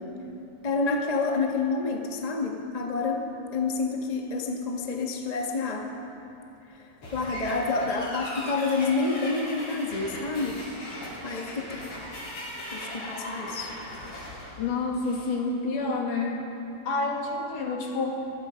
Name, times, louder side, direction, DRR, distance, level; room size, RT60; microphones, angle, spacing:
voice 1, 0.6-3.3 3.5-5.9 7.1-10.6 11.0-11.8 12.7-13.7, left 3 dB, 20° left, 1 dB, 1.0 m, -28 dB
sound 1, 7.0-15.4, left 1 dB, 55° left, 6.8 m, -39 dB
voice 2, 14.6-16.4 16.9-18.3, left 3 dB, 75° left, 0 dB, 3.8 m, -28 dB
26.0 x 20.0 x 5.3 m, 2.9 s
omnidirectional pair, 3.7 m